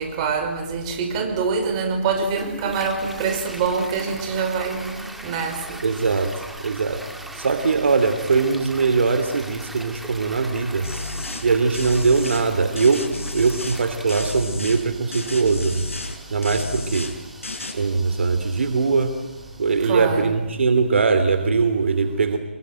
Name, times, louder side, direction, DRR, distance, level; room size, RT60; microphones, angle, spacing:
voice 1, 0.0-5.6 19.8-20.3, right 5 dB, 30° right, 4 dB, 5.7 m, -25 dB
Toilet flush, 2.2-20.1, right 1 dB, ahead, 2.0 m, -41 dB
voice 2, 5.8-7.0 7.3-10.9 11.4-13.0 13.3-15.8 16.3-17.1 17.7-19.1 19.6-22.4, right 4 dB, 65° right, 9 dB, 2.8 m, -21 dB
sound 1, 10.8-11.5 11.7-12.5 12.8-13.8 14.1-14.8 15.1-16.2 16.4-17.1 17.4-17.7, left 2 dB, 80° left, 6.1 m, -32 dB
28.0 x 23.0 x 9.3 m, 1.2 s
figure-of-eight pair, 150°, 7 cm